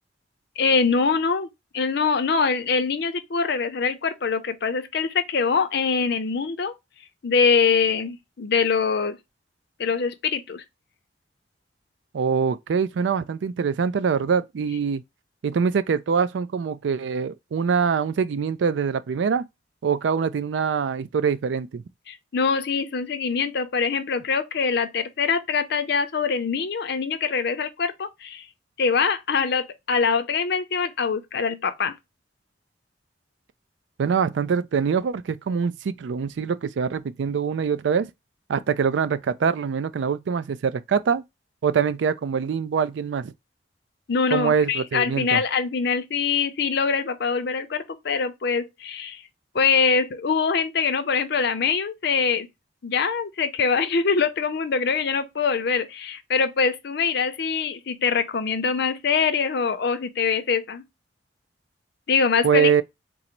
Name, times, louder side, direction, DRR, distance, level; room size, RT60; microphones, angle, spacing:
voice 1, 0.6-1.5 1.7-6.7 7.2-9.2 9.8-10.6 22.1-28.4 28.8-31.9 44.1-49.2 49.5-52.5 52.8-60.8 62.1-62.8, left 5 dB, 60° left, 0.5 m, -23 dB
voice 2, 12.1-15.0 15.4-19.4 19.8-21.8 34.0-38.1 38.5-41.2 41.6-43.3 44.3-45.4 62.4-62.8, right 6 dB, 75° right, 0.4 m, -24 dB
3.8 x 2.0 x 4.3 m
head